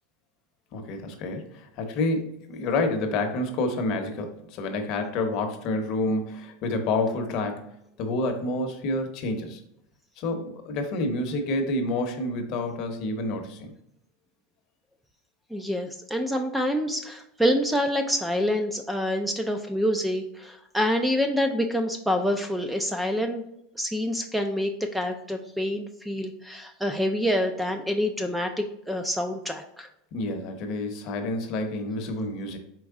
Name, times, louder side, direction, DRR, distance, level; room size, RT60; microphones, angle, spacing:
voice 1, 0.7-7.7 8.0-9.6 10.2-13.7 30.1-32.6, left 2 dB, 45° left, 5 dB, 0.8 m, -28 dB
voice 2, 15.5-23.4 23.8-29.9, equal, 5° right, 6 dB, 0.3 m, -27 dB
4.7 x 3.0 x 3.5 m, 0.79 s
supercardioid pair, 145°, 0 cm